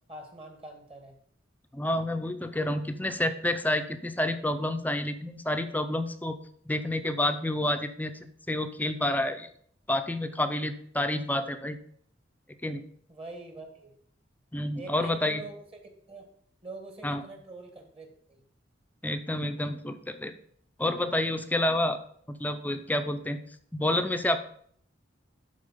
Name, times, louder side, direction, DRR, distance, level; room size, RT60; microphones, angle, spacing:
voice 1, 0.1-1.2 13.1-13.9 14.7-15.5 16.1-16.3 16.6-18.4, right 2 dB, 30° right, 4 dB, 1.5 m, -44 dB
voice 2, 1.7-6.4 6.7-8.1 8.5-9.5 9.9-11.8 12.6-12.8 14.5-15.4 17.0-17.2 19.0-20.3 20.8-22.0 22.3-23.4 23.7-24.4, left 1 dB, 10° left, 8 dB, 0.6 m, -29 dB
12.0 x 4.3 x 5.5 m, 0.62 s
head